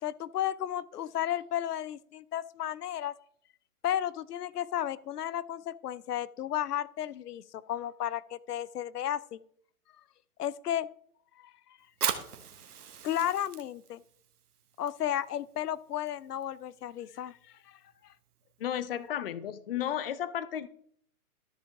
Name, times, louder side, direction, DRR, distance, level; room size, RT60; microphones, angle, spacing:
voice 1, 0.0-3.1 3.8-9.4 10.4-10.9 11.4-11.5 13.0-14.0 14.8-17.4 17.7-17.8, left 11 dB, 90° left, 20 dB, 0.6 m, -33 dB
Fire, 11.9-19.1, right 8 dB, 80° right, 1.4 m, -41 dB
voice 2, 18.6-20.7, left 10 dB, 40° left, 16 dB, 0.5 m, -33 dB
13.0 x 5.5 x 3.5 m, 0.64 s
hypercardioid pair, 150°, 45 cm